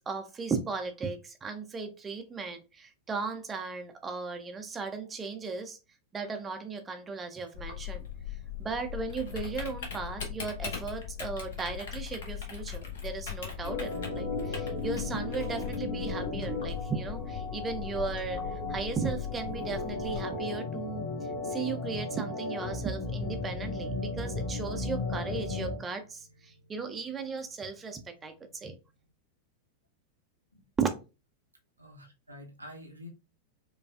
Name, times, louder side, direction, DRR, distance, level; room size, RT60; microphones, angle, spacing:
voice 1, 0.1-5.8 6.1-8.1 8.6-21.1 21.5-28.3 28.6-28.7 30.8-30.9, right 5 dB, 20° right, 0.5 m, -36 dB
Typing, 7.5-20.2, left 9 dB, 60° left, 1.0 m, -39 dB
Organ, 13.6-25.8, left 3 dB, 25° left, 1.3 m, -35 dB
sound 1, 14.1-28.7, left 1 dB, 90° left, 1.1 m, -47 dB
voice 2, 31.8-33.1, left 1 dB, 85° right, 0.8 m, -48 dB
4.8 x 2.3 x 2.3 m
figure-of-eight pair, 90°, 0 cm